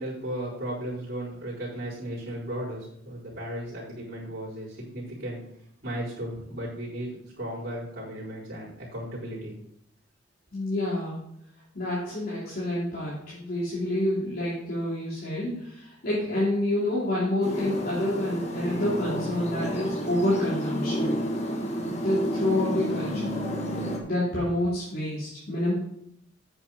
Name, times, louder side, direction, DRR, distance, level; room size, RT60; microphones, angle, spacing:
voice 1, 0.0-5.4 5.8-9.5, right 1 dB, 50° right, -11 dB, 4.6 m, -35 dB
voice 2, 10.5-11.2 11.7-21.2 21.9-23.4 24.0-25.7, left 1 dB, 50° left, -9 dB, 3.2 m, -28 dB
sound 1, 17.4-24.0, equal, 35° left, 1.5 m, -30 dB
9.9 x 8.0 x 4.3 m, 0.72 s
head